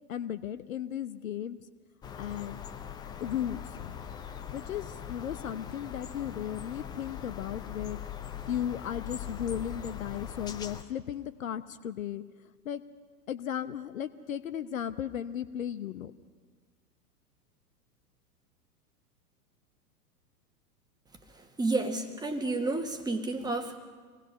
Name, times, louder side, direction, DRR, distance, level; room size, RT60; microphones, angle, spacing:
voice 1, 0.1-1.6 2.2-2.6 3.2-4.0 4.5-8.0 8.5-12.2 12.6-12.8 13.3-16.1, left 10 dB, 60° left, 12 dB, 1.0 m, -35 dB
sound 1, 2.0-10.8, left 9 dB, 10° left, 0.5 m, -41 dB
voice 2, 21.6-23.8, right 2 dB, 10° right, 5 dB, 1.6 m, -30 dB
26.0 x 18.5 x 5.6 m, 1.6 s
figure-of-eight pair, 100°, 47 cm